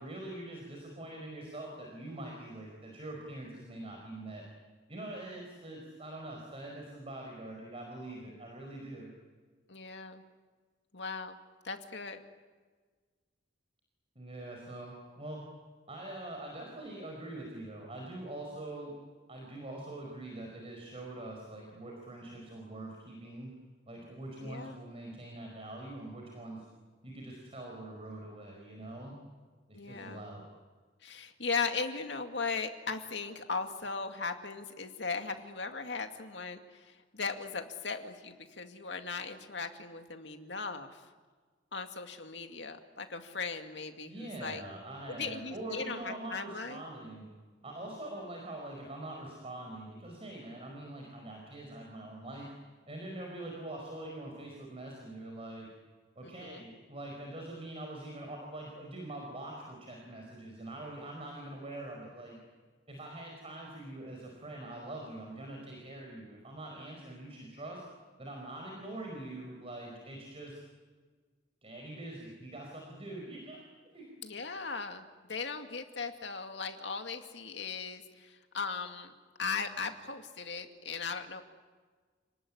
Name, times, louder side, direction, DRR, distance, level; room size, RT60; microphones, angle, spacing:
voice 1, 0.0-4.5 4.9-9.1 14.2-15.4 15.9-18.9 19.3-23.5 23.9-26.7 27.0-29.2 29.7-30.4 44.1-47.3 47.6-52.5 52.9-55.7 56.2-62.4 62.9-67.8 68.2-70.6 71.6-73.6 73.9-74.1, right 1 dB, 30° right, 0 dB, 5.1 m, -44 dB
voice 2, 9.7-10.2 10.9-11.4 11.6-12.2 24.4-24.8 29.7-30.3 31.0-41.0 41.7-44.6 45.1-46.8 56.2-56.6 74.2-79.1 79.4-81.4, left 4 dB, 70° left, 5 dB, 2.3 m, -38 dB
30.0 x 19.5 x 9.9 m, 1.5 s
head